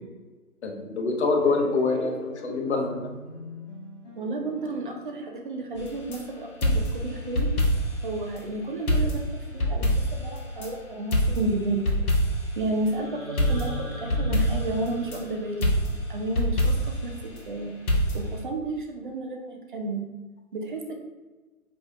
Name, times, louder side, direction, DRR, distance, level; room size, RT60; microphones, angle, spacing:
voice 1, 0.6-3.1, left 3 dB, 50° left, 2 dB, 0.8 m, -25 dB
sound 1, 1.4-5.9, left 2 dB, 15° left, 0.9 m, -40 dB
voice 2, 4.2-7.5 8.0-9.3 9.5-11.8 12.6-15.7 16.1-17.8 18.1-20.1 20.5-21.0, right 2 dB, 35° right, 3 dB, 0.6 m, -32 dB
sound 2, 5.8-6.2 6.6-8.1 8.4-8.5 8.9-10.7 11.1-12.6 13.4-15.2 15.6-17.1 17.9-18.4, equal, 80° left, 1.3 m, -25 dB
sound 3, 12.9-16.9, equal, 10° right, 0.8 m, -39 dB
5.1 x 3.4 x 2.6 m, 1.3 s
hypercardioid pair, 150°, 44 cm